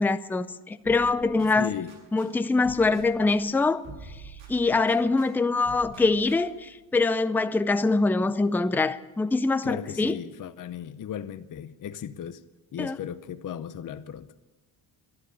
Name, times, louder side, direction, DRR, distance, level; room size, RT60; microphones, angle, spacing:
voice 1, 0.0-1.7 2.1-3.8 4.5-10.2 12.8-13.0, left 3 dB, 5° left, 0.4 m, -24 dB
sound 1, 0.8-2.3 2.6-5.3 5.6-6.7, right 3 dB, 70° right, 7.2 m, -47 dB
voice 2, 1.6-1.9 9.6-12.4 12.7-14.3, left 9 dB, 40° left, 0.7 m, -36 dB
12.0 x 11.0 x 9.9 m
cardioid pair, 105°, 48 cm